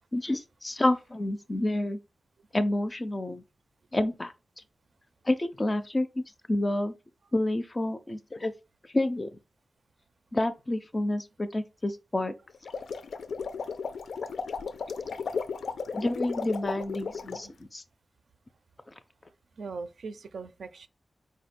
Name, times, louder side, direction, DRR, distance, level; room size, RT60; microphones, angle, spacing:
voice 1, 0.1-2.0 2.5-3.4 3.9-4.3 5.3-6.2 6.5-6.9 7.3-8.5 8.9-9.3 10.3-12.3 15.9-17.8, left 1 dB, 20° left, 0.4 m, -29 dB
sound 1, 12.5-17.5, left 5 dB, 80° left, 0.4 m, -35 dB
voice 2, 17.1-17.6 19.6-20.9, right 4 dB, 75° right, 0.5 m, -41 dB
5.0 x 2.1 x 4.1 m
wide cardioid pair, 160°, 0 cm